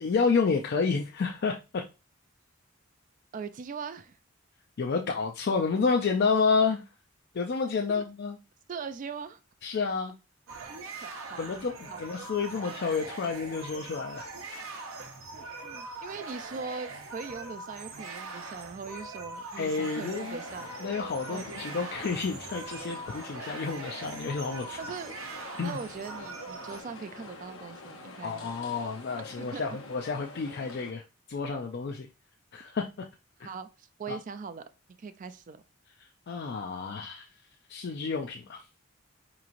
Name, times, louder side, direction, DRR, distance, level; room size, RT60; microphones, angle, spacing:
voice 1, 0.0-1.8 4.8-6.8 7.3-8.4 9.6-10.1 11.4-14.3 19.6-20.4 20.8-24.8 25.6-25.8 28.2-31.0 31.3-32.1 32.5-32.9 33.4-33.5 34.1-34.2 36.0-37.3 37.7-38.7, left 5 dB, 50° left, 0.4 m, -30 dB
voice 2, 3.3-4.2 8.0-8.1 8.7-9.4 10.6-10.7 11.0-11.4 11.9-12.0 14.9-15.1 15.3-20.7 21.3-21.8 22.9-23.0 24.8-25.1 25.6-28.5 29.4-29.7 33.4-34.6 35.0-35.6, right 5 dB, 40° right, 0.3 m, -41 dB
sound 1, 10.5-26.8, right 3 dB, 80° right, 0.7 m, -42 dB
sound 2, 20.1-30.9, left 3 dB, 80° left, 0.7 m, -47 dB
4.7 x 3.0 x 2.5 m
head